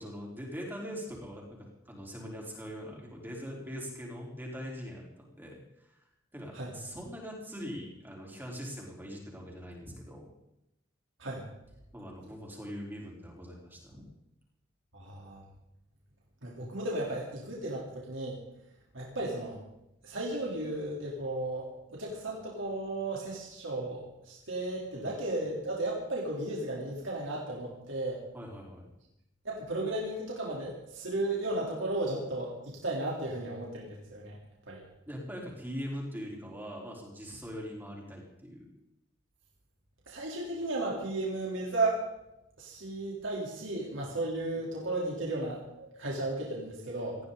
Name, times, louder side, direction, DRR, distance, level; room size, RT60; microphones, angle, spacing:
voice 1, 0.0-5.9 6.3-10.3 11.9-14.0 24.9-25.1 28.3-28.9 35.1-38.7 44.0-44.1, equal, 10° right, -2 dB, 4.3 m, -42 dB
voice 2, 14.9-15.4 16.4-18.4 18.9-19.6 20.0-28.2 29.4-34.4 34.7-34.8 40.1-42.0 42.6-47.2, right 2 dB, 70° right, -3 dB, 3.8 m, -34 dB
19.5 x 15.5 x 4.1 m, 0.86 s
head